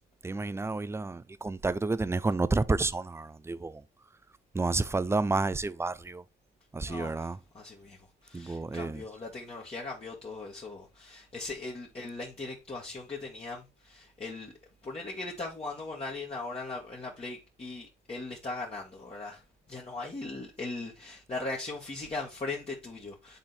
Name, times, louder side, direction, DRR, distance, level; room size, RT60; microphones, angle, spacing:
voice 1, 0.2-3.8 4.5-6.2 6.7-7.4 8.3-9.0, right 3 dB, 15° right, 0.5 m, -30 dB
voice 2, 6.8-7.3 7.5-14.5 14.8-19.4 19.7-23.4, left 3 dB, 30° left, 1.9 m, -39 dB
8.9 x 3.8 x 4.2 m
cardioid pair, 90°, 20 cm